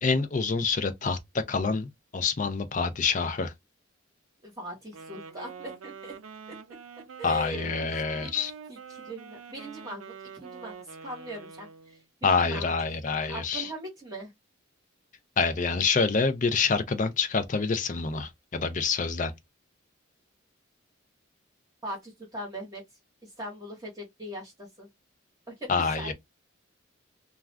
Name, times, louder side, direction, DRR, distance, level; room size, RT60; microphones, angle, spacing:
voice 1, 0.0-1.2 1.5-3.5 7.2-8.5 12.2-13.7 15.4-19.3 25.7-26.1, left 4 dB, 35° left, 0.4 m, -27 dB
voice 2, 4.4-6.2 6.5-6.6 7.2-7.9 8.2-8.4 8.7-13.0 13.3-14.3 21.8-22.8 23.2-24.9 25.5-26.1, equal, 15° right, 1.2 m, -40 dB
Wind instrument woodwind instrument, 4.9-12.0, right 6 dB, 90° right, 0.5 m, -45 dB
2.4 x 2.4 x 3.2 m
head